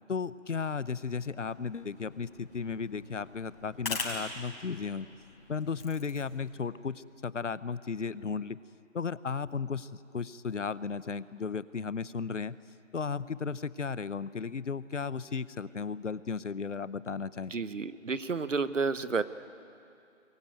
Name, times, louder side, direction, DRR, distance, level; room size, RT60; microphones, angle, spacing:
voice 1, 0.1-5.1 5.5-8.6 8.9-12.6 12.9-17.5, left 5 dB, 70° left, 17 dB, 0.9 m, -35 dB
sound 1, 1.0-6.5, left 3 dB, 45° left, 5.3 m, -42 dB
voice 2, 17.5-19.2, right 4 dB, 75° right, 14 dB, 1.2 m, -30 dB
23.0 x 20.5 x 9.3 m, 2.6 s
figure-of-eight pair, 175°, 38 cm